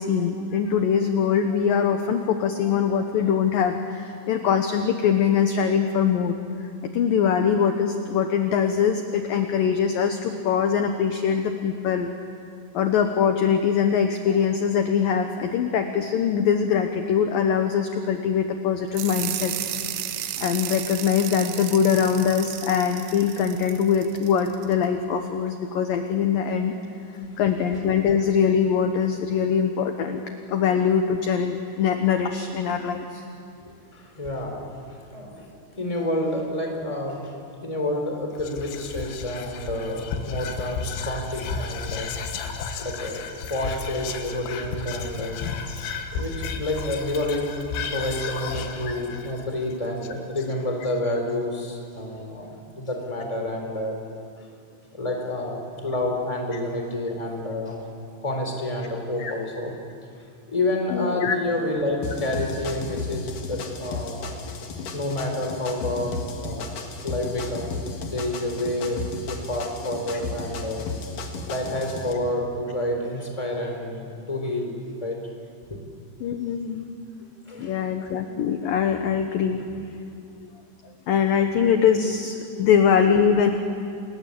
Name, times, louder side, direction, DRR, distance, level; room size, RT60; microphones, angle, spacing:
voice 1, 0.0-6.7 6.9-12.1 12.7-19.5 20.4-26.8 27.4-30.2 30.5-33.2 59.2-59.3 60.9-61.3 76.2-76.9 77.6-79.6 81.1-83.5, left 7 dB, 70° left, 6 dB, 2.2 m, -22 dB
sound 1, 18.9-24.7, right 11 dB, 80° right, 3.5 m, -33 dB
voice 2, 33.9-37.4 37.6-42.1 42.8-45.3 45.9-53.9 54.4-54.5 54.9-57.8 58.2-59.7 60.4-64.3 64.9-66.1 66.4-70.8 71.4-75.2 75.7-75.8 77.5-77.7 81.8-81.9 82.5-82.7, left 1 dB, 10° left, 2 dB, 3.2 m, -29 dB
Whispering, 38.4-50.8, left 5 dB, 85° left, 4.0 m, -33 dB
sound 2, 62.0-72.1, left 3 dB, 55° left, 3.1 m, -34 dB
29.0 x 21.0 x 8.6 m, 2.4 s
omnidirectional pair, 5.4 m